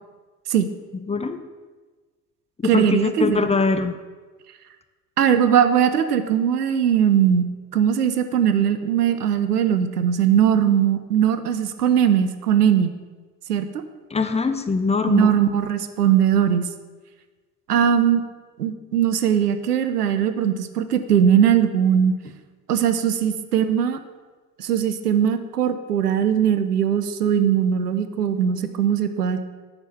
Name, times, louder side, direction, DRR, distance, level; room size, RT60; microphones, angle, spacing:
voice 1, 1.1-1.4 2.6-3.9 14.1-15.3, left 4 dB, 15° left, 8 dB, 0.7 m, -22 dB
voice 2, 2.6-3.5 5.2-12.9 13.5-13.8 15.1-16.7 17.7-18.2 18.6-22.2 22.7-24.0 24.6-29.4, right 9 dB, 80° right, 10 dB, 0.7 m, -20 dB
8.9 x 5.1 x 7.2 m, 1.3 s
figure-of-eight pair, 55°, 45 cm